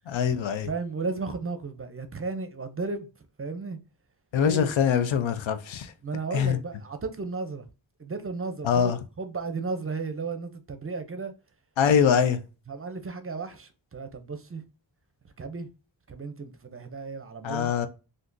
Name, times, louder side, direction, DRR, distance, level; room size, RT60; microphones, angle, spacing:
voice 1, 0.1-0.7 4.3-5.9 6.3-6.6 8.6-9.0 11.8-12.4 17.4-17.9, left 7 dB, 85° left, 0.5 m, -23 dB
voice 2, 0.6-3.1 3.4-3.8 4.4-4.7 6.0-7.7 8.0-8.9 9.2-11.3 12.7-14.6 15.4-15.7 16.1-17.7, right 4 dB, 30° right, 0.5 m, -34 dB
3.6 x 2.6 x 2.5 m
wide cardioid pair, 65°, 45 cm